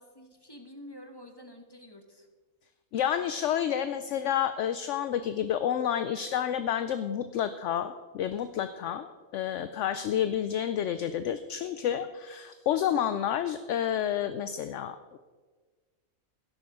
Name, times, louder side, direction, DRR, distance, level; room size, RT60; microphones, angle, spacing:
voice 1, 0.0-2.3, left 1 dB, 20° left, 5 dB, 1.0 m, -48 dB
voice 2, 2.9-15.2, left 9 dB, 70° left, 12 dB, 0.8 m, -30 dB
12.5 x 10.5 x 4.8 m, 1.4 s
omnidirectional pair, 1.4 m